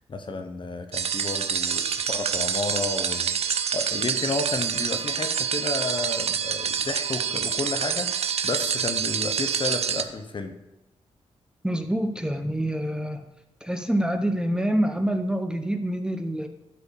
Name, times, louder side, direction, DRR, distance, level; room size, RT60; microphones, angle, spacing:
voice 1, 0.0-10.6, left 3 dB, 45° left, 7 dB, 1.0 m, -32 dB
sound 1, 0.9-10.0, right 7 dB, 65° right, 0.6 m, -27 dB
voice 2, 11.6-13.2 13.6-16.5, right 1 dB, 5° right, 7 dB, 0.8 m, -26 dB
12.0 x 4.9 x 5.2 m, 0.98 s
cardioid pair, 70°, 11 cm